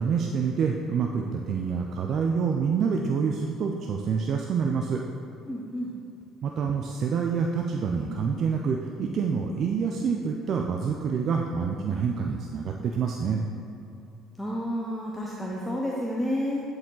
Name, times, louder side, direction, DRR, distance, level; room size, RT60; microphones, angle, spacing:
voice 1, 0.0-5.0 6.4-13.4, right 6 dB, 50° right, 1 dB, 0.4 m, -27 dB
voice 2, 5.5-5.9 14.4-16.6, equal, 5° left, -4 dB, 0.7 m, -30 dB
9.8 x 4.8 x 3.9 m, 2.8 s
cardioid pair, 115°, 0 cm